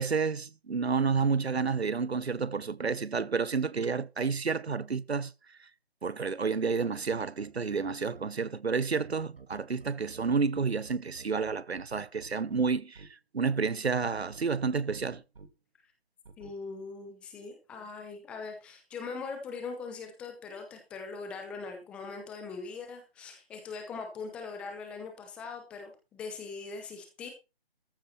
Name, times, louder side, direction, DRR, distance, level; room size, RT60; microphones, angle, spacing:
voice 1, 0.0-5.3 6.0-13.1 13.3-15.2, right 5 dB, 90° right, 1.0 m, -30 dB
sound 1, 7.0-8.3 9.0-13.1 13.8-15.5 16.2-16.5, right 4 dB, 65° right, 2.5 m, -50 dB
voice 2, 16.4-27.3, left 4 dB, 5° left, 0.8 m, -41 dB
14.0 x 8.4 x 4.3 m
figure-of-eight pair, 160°, 31 cm